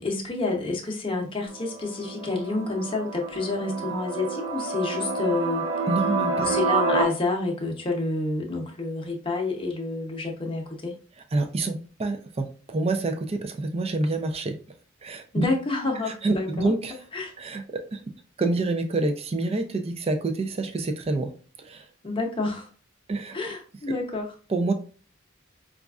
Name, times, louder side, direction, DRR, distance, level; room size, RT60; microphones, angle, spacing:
voice 1, 0.0-5.6 6.4-11.0 15.3-16.7 17.1-17.3 22.0-22.7 23.3-24.3, left 3 dB, 25° left, 1 dB, 0.7 m, -29 dB
sound 1, 1.5-7.0, right 4 dB, 60° right, 1.0 m, -28 dB
voice 2, 5.9-6.6 11.3-14.6 15.0-15.5 16.2-16.9 17.4-18.0 18.4-21.3 21.6-21.9 23.1-23.4 24.5-24.7, right 2 dB, 30° right, 6 dB, 0.4 m, -27 dB
5.0 x 2.4 x 2.3 m, 0.38 s
head